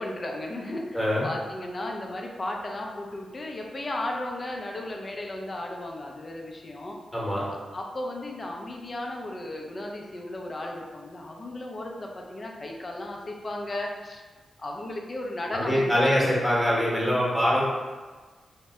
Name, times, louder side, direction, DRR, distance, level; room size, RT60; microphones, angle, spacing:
voice 1, 0.0-7.0 7.5-14.2 14.6-16.1, left 1 dB, 40° left, 1 dB, 0.4 m, -35 dB
voice 2, 0.9-1.3 7.1-7.4 15.5-17.6, equal, 10° left, -6 dB, 1.0 m, -23 dB
2.6 x 2.0 x 3.4 m, 1.4 s
cardioid pair, 80°, 0 cm